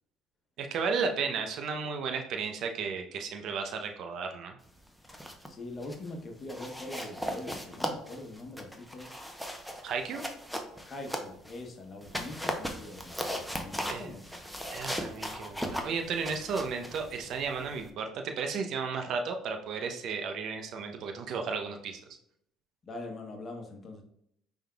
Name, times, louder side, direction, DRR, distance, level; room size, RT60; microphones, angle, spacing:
voice 1, 0.6-4.6 9.8-10.2 13.9-14.1 14.7-22.0, right 5 dB, 65° right, 5 dB, 0.7 m, -34 dB
sound 1, 4.9-5.5 5.8-6.1 6.5-11.6 12.0-17.9, equal, ahead, 0.8 m, -38 dB
voice 2, 5.5-9.4 10.9-14.3 22.8-24.0, left 2 dB, 40° left, 3 dB, 1.0 m, -43 dB
5.5 x 3.6 x 2.3 m, 0.73 s
supercardioid pair, 75°, 0 cm